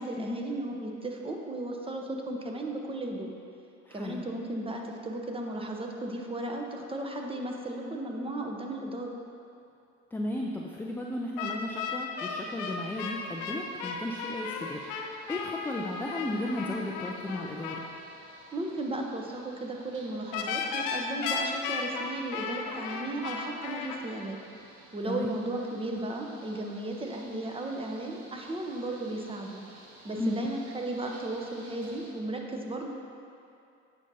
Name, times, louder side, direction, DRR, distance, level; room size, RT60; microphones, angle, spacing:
voice 1, 0.0-3.3 3.9-9.1 18.5-24.4 24.9-29.6 30.0-32.9, right 1 dB, 15° right, 1 dB, 0.8 m, -35 dB
voice 2, 3.9-4.2 10.1-14.8 15.3-17.9 25.1-25.3 30.2-30.5, left 1 dB, 5° left, -1 dB, 0.4 m, -34 dB
sound 1, 11.4-17.9 20.3-24.0, left 5 dB, 75° left, 0.7 m, -35 dB
sound 2, 12.4-32.1, right 2 dB, 60° right, 1.3 m, -55 dB
9.0 x 5.3 x 2.8 m, 2.6 s
supercardioid pair, 80°, 33 cm